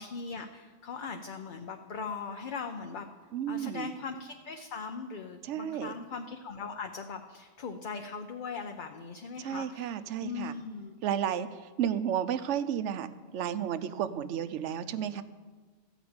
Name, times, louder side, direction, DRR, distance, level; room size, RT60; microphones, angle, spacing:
voice 1, 0.0-3.1 3.5-10.9, left 5 dB, 50° left, 5 dB, 0.7 m, -40 dB
voice 2, 3.3-3.9 5.4-5.9 9.4-10.5 11.0-15.2, right 9 dB, 80° right, 13 dB, 0.9 m, -32 dB
14.0 x 5.0 x 8.6 m, 1.4 s
omnidirectional pair, 1.2 m